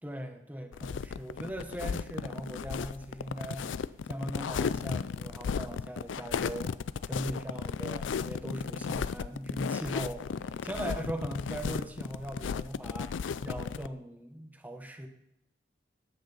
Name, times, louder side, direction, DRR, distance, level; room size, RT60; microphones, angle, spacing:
voice 1, 0.0-3.8 4.1-6.8 7.1-15.1, right 1 dB, 10° right, 5 dB, 1.0 m, -40 dB
sound 1, 0.7-13.9, left 6 dB, 90° left, 0.4 m, -35 dB
13.5 x 9.4 x 4.0 m, 0.83 s
head